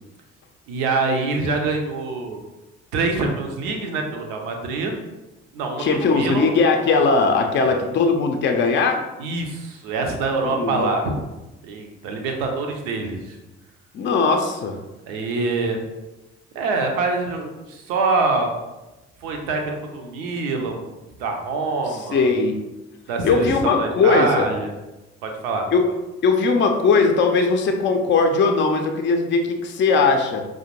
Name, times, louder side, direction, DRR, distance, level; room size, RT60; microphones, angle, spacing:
voice 1, 0.7-2.4 2.9-4.9 5.5-6.5 7.6-7.8 9.2-11.1 11.6-13.4 15.1-15.8 16.5-18.5 19.2-20.9 21.2-22.3 23.1-24.8 25.2-25.6, right 3 dB, 70° right, 3 dB, 0.6 m, -25 dB
voice 2, 5.8-9.0 10.4-10.9 13.9-14.7 22.1-22.6 23.2-24.5 25.7-25.9 26.2-30.4, left 4 dB, 35° left, 4 dB, 0.5 m, -19 dB
4.9 x 2.1 x 2.9 m, 1.0 s
figure-of-eight pair, 45°, 35 cm